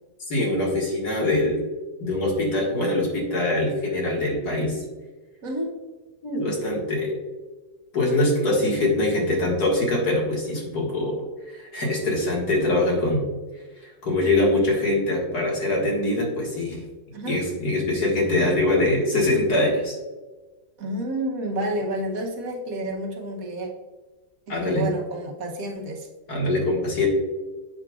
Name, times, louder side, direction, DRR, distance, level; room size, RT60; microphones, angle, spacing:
voice 1, 0.3-1.6 2.0-4.8 6.2-7.1 7.9-11.2 11.5-13.3 13.8-16.8 17.3-20.0 24.5-24.9 26.3-27.1, left 2 dB, 75° left, -3 dB, 2.4 m, -23 dB
voice 2, 5.4-5.7 17.1-17.4 20.8-23.7 24.5-26.1, right 1 dB, 60° right, 1 dB, 1.3 m, -30 dB
7.8 x 6.1 x 2.4 m, 1.2 s
omnidirectional pair, 1.7 m